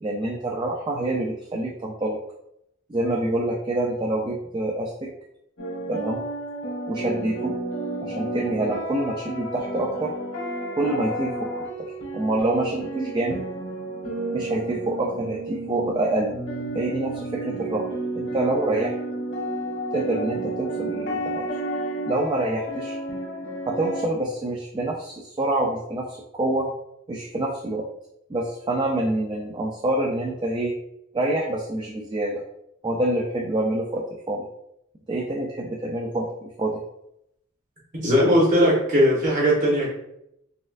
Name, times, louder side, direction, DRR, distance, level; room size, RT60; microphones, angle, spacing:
voice 1, 0.0-2.2 2.9-5.1 5.9-6.2 6.9-7.5 8.0-10.1 10.7-11.6 12.1-13.4 14.3-16.3 16.7-17.8 18.1-19.0 19.9-21.5 22.1-23.0 23.7-26.7 27.1-27.8 28.3-30.7 31.1-32.4 32.8-34.5 35.1-36.3 36.6-36.8, right 2 dB, 25° right, -1 dB, 0.3 m, -26 dB
sound 1, 5.6-24.0, right 1 dB, 70° left, 1.1 m, -31 dB
voice 2, 38.0-39.9, equal, 40° right, -5 dB, 1.2 m, -19 dB
4.1 x 2.4 x 2.4 m, 0.78 s
head